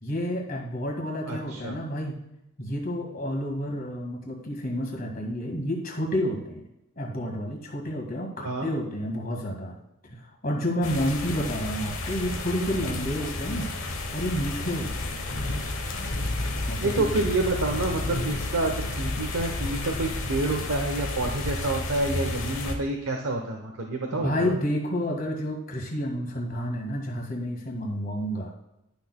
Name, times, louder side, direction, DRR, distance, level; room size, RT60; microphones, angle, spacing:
voice 1, 0.0-2.2 2.6-6.6 7.0-9.8 10.0-13.7 14.1-15.4 16.7-17.1 24.1-28.5, equal, 40° left, 1 dB, 1.8 m, -30 dB
voice 2, 1.3-1.8 8.4-8.7 16.8-24.5, right 2 dB, 90° right, 2 dB, 0.9 m, -28 dB
sound 1, 10.8-22.7, left 2 dB, 70° left, 1.2 m, -31 dB
11.5 x 6.2 x 2.2 m, 0.86 s
head